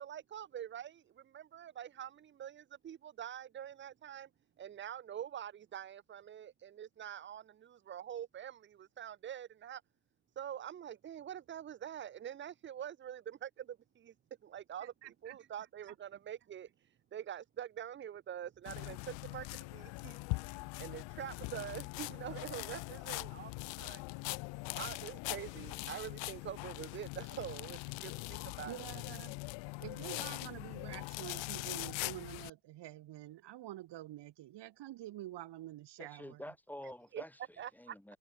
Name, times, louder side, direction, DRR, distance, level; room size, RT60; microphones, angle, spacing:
voice 1, 0.0-4.3 4.6-9.8 10.4-14.1 14.4-20.5 20.8-24.0 24.8-28.9 37.1-37.2 37.6-38.1, right 10 dB, 25° right, 0.5 m, -45 dB
voice 2, 14.8-15.4 28.6-29.3 29.8-36.4, right 15 dB, 55° right, 3.0 m, -47 dB
sound 1, 18.7-32.5, left 26 dB, 70° left, 0.7 m, -42 dB
voice 3, 36.0-38.2, left 1 dB, 5° left, 5.1 m, -49 dB
supercardioid pair, 100°, 48 cm